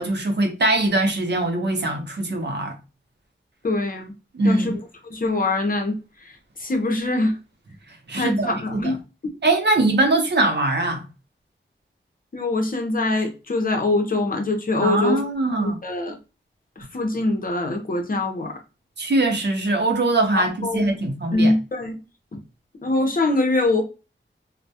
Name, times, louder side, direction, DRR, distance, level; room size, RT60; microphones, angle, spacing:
voice 1, 0.0-2.8 4.3-4.8 8.1-9.0 9.4-11.0 14.8-15.8 19.0-21.5, right 2 dB, 60° right, 0.6 m, -22 dB
voice 2, 3.6-4.1 4.4-4.8 5.1-5.9 6.6-7.4 8.1-9.0 12.3-15.2 15.6-16.2 16.8-18.5 20.3-20.9 21.3-22.0 22.8-23.8, left 2 dB, 45° left, 0.6 m, -23 dB
2.2 x 2.0 x 2.7 m
wide cardioid pair, 90°, 20 cm